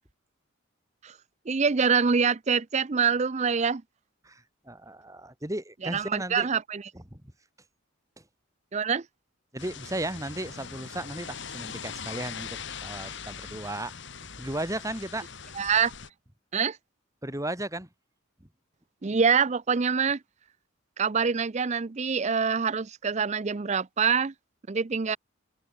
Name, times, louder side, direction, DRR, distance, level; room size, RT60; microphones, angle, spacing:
voice 1, 1.5-3.8 5.9-6.8 8.7-9.1 15.6-15.9 16.5-16.8 19.0-20.2 21.0-24.3 24.7-25.2, right 6 dB, 35° right, 0.5 m, -25 dB
voice 2, 4.2-6.5 6.9-7.2 8.2-8.3 9.5-13.9 14.4-15.3 17.2-17.9, right 1 dB, 15° right, 3.1 m, -35 dB
sound 1, 9.6-16.1, left 6 dB, 55° left, 2.4 m, -41 dB
head